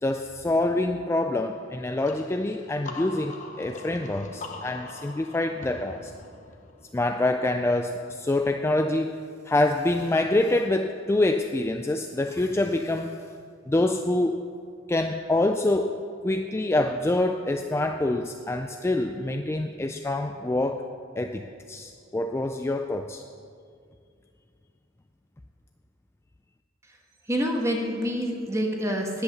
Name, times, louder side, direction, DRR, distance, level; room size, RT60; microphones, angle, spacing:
voice 1, 0.0-6.1 6.9-13.2 13.7-14.5 14.9-16.0 16.2-20.8 21.2-21.4 21.7-23.2, left 2 dB, 15° left, 5 dB, 0.3 m, -26 dB
sound 1, 2.0-7.6, left 3 dB, 40° left, 0.9 m, -42 dB
voice 2, 27.3-29.2, equal, 15° right, 1 dB, 1.4 m, -27 dB
10.5 x 8.1 x 6.6 m, 2.3 s
head